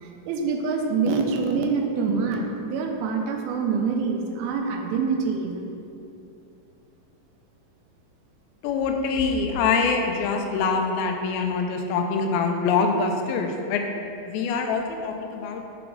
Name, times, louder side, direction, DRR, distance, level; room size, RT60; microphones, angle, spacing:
voice 1, 0.0-5.7, right 4 dB, 90° right, 3 dB, 2.5 m, -25 dB
voice 2, 8.6-13.8 14.2-15.6, left 4 dB, 90° left, 4 dB, 2.5 m, -24 dB
5.9 x 4.8 x 5.2 m, 2.7 s
omnidirectional pair, 4.3 m